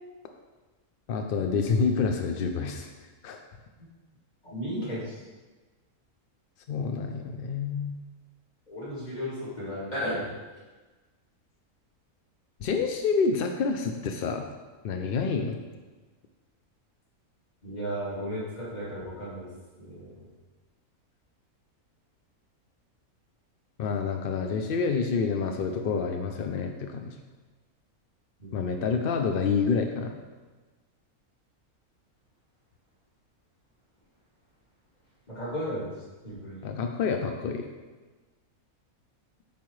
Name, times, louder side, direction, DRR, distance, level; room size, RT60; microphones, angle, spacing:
voice 1, 1.1-2.9 3.2-3.4 6.7-7.9 12.6-14.4 14.8-15.6 23.8-27.1 28.5-30.2 36.6-37.6, left 5 dB, 70° left, 4 dB, 0.5 m, -28 dB
voice 2, 4.4-5.0 8.7-10.3 17.6-19.5 19.8-20.1 28.4-28.6 35.3-35.9 36.2-36.6, equal, 30° left, -8 dB, 2.5 m, -34 dB
8.4 x 5.6 x 3.1 m, 1.3 s
omnidirectional pair, 1.5 m